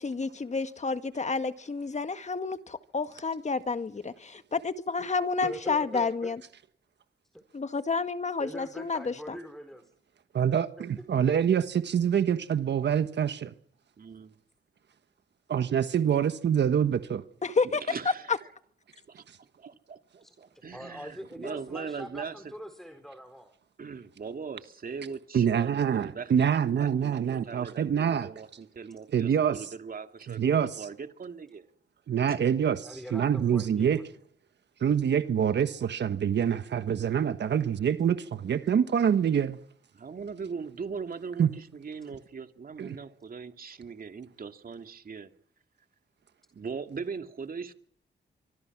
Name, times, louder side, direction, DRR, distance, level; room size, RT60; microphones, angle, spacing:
voice 1, 0.0-6.4 7.5-9.4 17.4-17.8 18.3-18.4, left 4 dB, 40° left, 1.8 m, -30 dB
voice 2, 5.4-6.3 8.4-9.9 10.8-10.9 20.2-20.3 20.7-23.5 32.8-34.1, equal, ahead, 4.3 m, -42 dB
voice 3, 10.3-13.5 15.5-17.2 25.3-28.3 29.1-29.7 30.3-30.9 32.1-34.0 34.8-39.6 41.4-41.5 42.8-42.9, right 8 dB, 70° right, 1.4 m, -26 dB
voice 4, 14.0-14.3 17.7-18.5 19.1-19.2 19.9-22.5 23.8-26.3 26.6-30.4 30.8-31.7 39.9-45.3 46.5-47.7, right 5 dB, 50° right, 2.4 m, -40 dB
25.0 x 25.0 x 6.1 m
cardioid pair, 80°, 19 cm